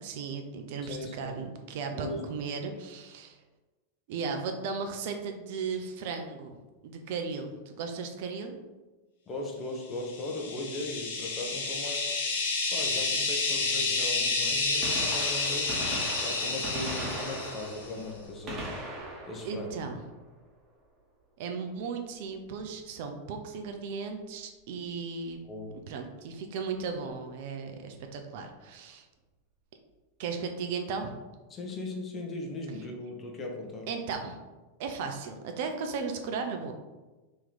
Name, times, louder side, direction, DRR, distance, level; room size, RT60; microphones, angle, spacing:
voice 1, 0.0-3.4 4.1-8.6 19.4-20.0 21.4-25.4 25.9-29.1 30.2-31.2 33.9-34.4 34.8-36.7, right 5 dB, 55° right, 5 dB, 0.5 m, -36 dB
voice 2, 0.8-1.4 1.9-2.2 9.3-12.1 12.7-18.7 19.3-19.7 25.4-25.7 31.5-33.9, left 2 dB, 25° left, 0 dB, 0.9 m, -38 dB
sound 1, 10.1-17.9, left 3 dB, 65° left, 0.8 m, -30 dB
Gunshot gunfire, 14.8-20.5 22.5-22.6 23.6-23.7 25.3-25.4 26.8-26.9 27.1-27.2, right 1 dB, 30° right, 1.2 m, -39 dB
3.1 x 2.9 x 3.9 m, 1.2 s
figure-of-eight pair, 95°, 0 cm